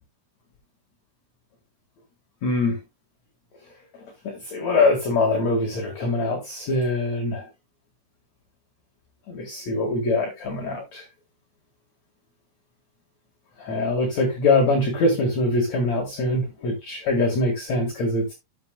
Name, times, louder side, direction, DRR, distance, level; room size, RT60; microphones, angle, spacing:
voice 1, 2.4-2.8 4.2-7.4 9.3-11.0 13.6-18.3, left 2 dB, 50° left, 2.3 m, -23 dB
12.5 x 7.8 x 2.3 m
omnidirectional pair, 5.7 m